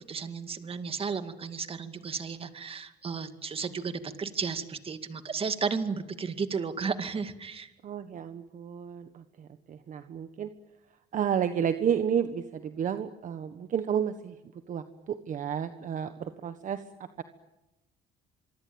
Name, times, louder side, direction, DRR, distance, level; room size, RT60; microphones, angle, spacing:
voice 1, 0.1-7.7, right 5 dB, 35° right, 9 dB, 2.3 m, -33 dB
voice 2, 7.8-10.5 11.1-14.4 14.7-16.8, right 8 dB, 50° right, 10 dB, 1.4 m, -31 dB
25.5 x 24.0 x 8.8 m, 0.96 s
cardioid pair, 110°, 17 cm